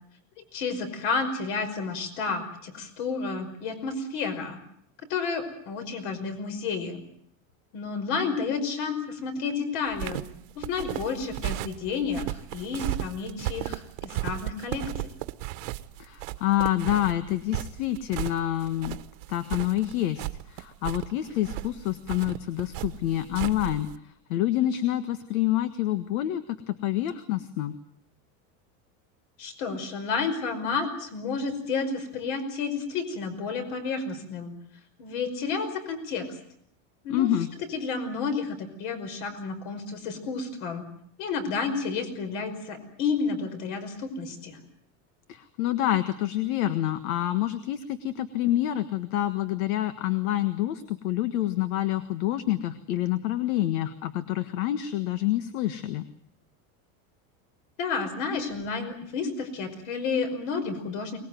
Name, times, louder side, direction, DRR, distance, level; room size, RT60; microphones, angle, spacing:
voice 1, 0.5-4.6 5.1-7.0 7.7-10.2 10.6-15.1 29.4-34.5 35.0-36.3 37.0-37.3 37.6-40.8 41.2-44.6 57.8-61.2, left 4 dB, 60° left, 8 dB, 5.4 m, -31 dB
sound 1, 9.9-24.0, right 16 dB, 65° right, 1.4 m, -35 dB
voice 2, 16.0-19.0 19.3-23.9 24.3-27.7 37.1-37.5 45.3-56.1, left 13 dB, 80° left, 11 dB, 1.7 m, -27 dB
24.0 x 20.0 x 9.2 m, 0.69 s
supercardioid pair, 160°, 42 cm